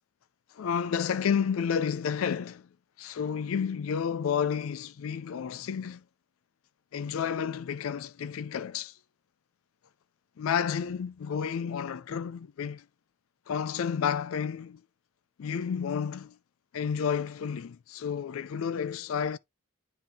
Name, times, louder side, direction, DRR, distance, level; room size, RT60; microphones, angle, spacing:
voice 1, 0.5-2.7 3.0-6.0 6.9-8.9 10.4-12.8 13.5-14.8 15.4-16.4 16.7-19.4, left 7 dB, 75° left, 0.4 m, -31 dB
8.4 x 3.8 x 3.5 m
head